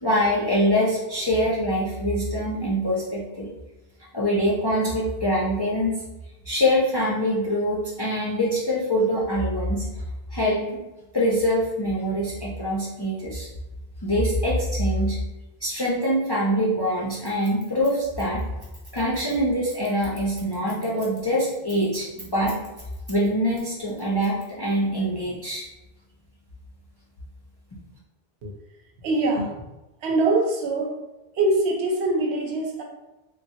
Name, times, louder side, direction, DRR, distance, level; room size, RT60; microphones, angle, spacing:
voice 1, 0.0-3.5 4.1-6.0 6.5-9.9 10.3-10.9 11.1-13.5 14.0-15.2 15.6-18.4 18.9-22.5 23.1-25.6, equal, 40° left, -6 dB, 0.3 m, -24 dB
Scissors, 17.1-23.3 23.6-24.8, right 1 dB, 25° right, 0.8 m, -46 dB
voice 2, 29.0-29.7 30.0-31.0 31.3-32.8, right 2 dB, 85° right, 0 dB, 0.9 m, -23 dB
3.2 x 2.2 x 2.7 m, 1.0 s
omnidirectional pair, 1.1 m